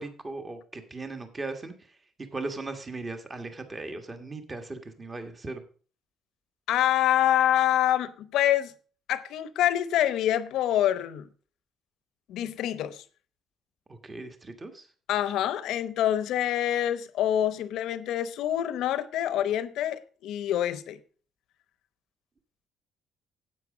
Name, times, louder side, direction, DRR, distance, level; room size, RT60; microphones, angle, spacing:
voice 1, 0.0-1.9 2.3-5.6 13.9-14.9, right 3 dB, 25° right, 1.5 m, -38 dB
voice 2, 6.7-8.7 9.1-11.3 12.3-13.0 15.1-21.0, left 11 dB, 75° left, 0.8 m, -26 dB
9.6 x 8.3 x 5.0 m
cardioid pair, 85°, 0 cm